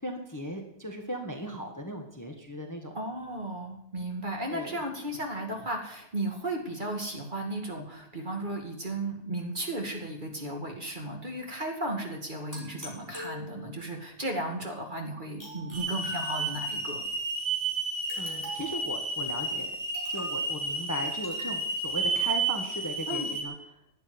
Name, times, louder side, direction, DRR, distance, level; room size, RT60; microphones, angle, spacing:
voice 1, 0.0-2.9 4.5-4.8 18.2-19.7 20.1-23.5, equal, 15° left, 3 dB, 1.5 m, -37 dB
voice 2, 2.9-17.0 23.1-23.3, right 1 dB, 35° right, 2 dB, 2.5 m, -35 dB
sound 1, 12.5-13.9 15.4-16.8 18.1-18.9 19.9-20.5 21.2-21.6, equal, 10° right, 5.1 m, -44 dB
Hiss / Alarm, 15.7-23.4, right 3 dB, 60° right, 3.2 m, -31 dB
12.0 x 9.3 x 9.5 m, 0.76 s
omnidirectional pair, 1.5 m